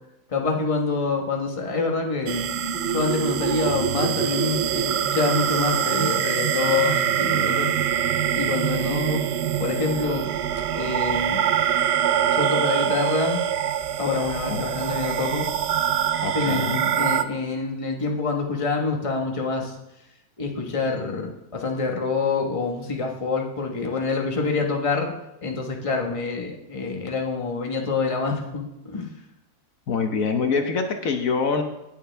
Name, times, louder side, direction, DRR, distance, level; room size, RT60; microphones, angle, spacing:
voice 1, 0.3-2.5 2.8-7.7 8.4-9.2 9.6-10.3 10.7-11.4 12.3-13.4 14.0-15.5 16.3-19.7 20.4-25.1 25.4-29.1, left 4 dB, 25° left, 1 dB, 1.3 m, -26 dB
sound 1, 2.3-17.2, right 9 dB, 65° right, 0.7 m, -24 dB
voice 2, 16.2-16.8 29.9-31.6, left 5 dB, 65° left, 5 dB, 1.4 m, -25 dB
18.5 x 7.0 x 3.4 m, 0.88 s
omnidirectional pair, 1.6 m